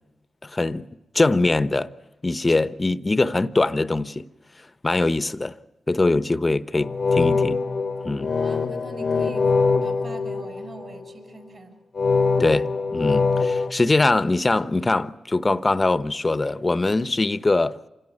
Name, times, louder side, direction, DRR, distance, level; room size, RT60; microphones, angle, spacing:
voice 1, 0.4-0.9 1.1-1.9 2.2-4.3 4.8-5.6 5.9-7.6 8.0-8.3 12.4-17.8, left 2 dB, 30° left, 1.0 m, -22 dB
sound 1, 6.7-11.1 12.0-13.7, left 4 dB, 55° left, 1.0 m, -23 dB
voice 2, 8.3-9.5 9.8-11.7, right 3 dB, 50° right, 6.5 m, -41 dB
26.5 x 17.0 x 9.7 m
cardioid pair, 60°, 0 cm